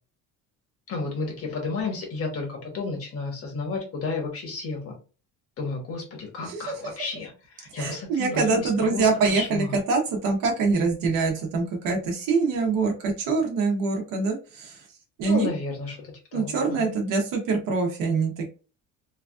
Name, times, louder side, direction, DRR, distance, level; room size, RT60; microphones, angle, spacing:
voice 1, 0.9-4.9 5.6-7.3 7.6-9.8 15.2-17.0, left 4 dB, 45° left, 1 dB, 1.2 m, -32 dB
voice 2, 6.4-6.8 7.8-14.8 15.2-15.5 16.3-18.4, right 4 dB, 70° right, 1 dB, 0.9 m, -24 dB
3.2 x 2.3 x 2.4 m, 0.34 s
cardioid pair, 135°, 34 cm